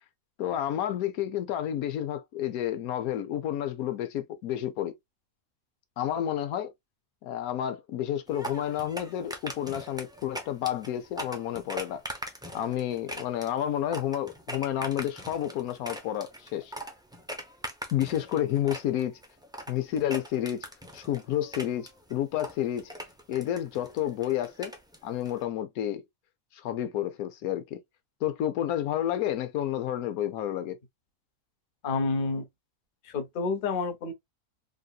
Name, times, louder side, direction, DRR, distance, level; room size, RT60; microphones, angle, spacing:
voice 1, 0.4-4.9 6.0-6.7 7.2-12.0 12.5-16.7 17.9-19.2 19.7-20.7 20.9-22.9 23.3-24.7 25.0-26.0 26.5-27.8 28.2-30.8, left 11 dB, 85° left, 1.1 m, -30 dB
sound 1, 8.3-25.4, equal, 5° right, 0.3 m, -41 dB
voice 2, 31.8-32.5 33.0-34.1, left 4 dB, 45° left, 0.8 m, -29 dB
3.7 x 2.7 x 2.3 m
omnidirectional pair, 1.5 m